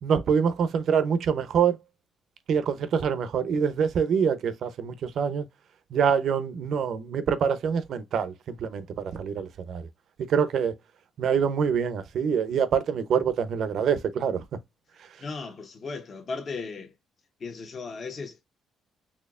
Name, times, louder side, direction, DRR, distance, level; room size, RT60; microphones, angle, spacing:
voice 1, 0.0-1.8 2.5-5.5 5.9-9.9 10.3-10.7 11.2-14.4, right 7 dB, 65° right, 0.6 m, -25 dB
voice 2, 15.2-16.9 17.4-18.4, left 4 dB, 45° left, 0.9 m, -36 dB
4.3 x 3.0 x 2.3 m
cardioid pair, 90°, 0 cm